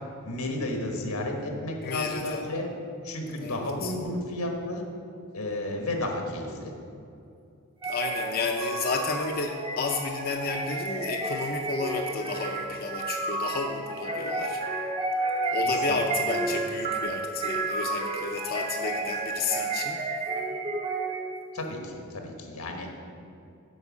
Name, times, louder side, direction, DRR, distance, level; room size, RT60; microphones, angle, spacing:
voice 1, 0.2-2.7 3.0-4.8 5.3-6.7 15.6-16.1 21.5-22.9, left 1 dB, 90° left, 2 dB, 1.4 m, -32 dB
voice 2, 1.8-2.4 3.4-3.9 7.8-14.6 15.5-20.0, left 4 dB, 45° left, 2 dB, 0.5 m, -32 dB
sound 1, 7.8-21.5, right 2 dB, 25° right, 0.8 m, -31 dB
8.0 x 5.4 x 7.1 m, 2.6 s
head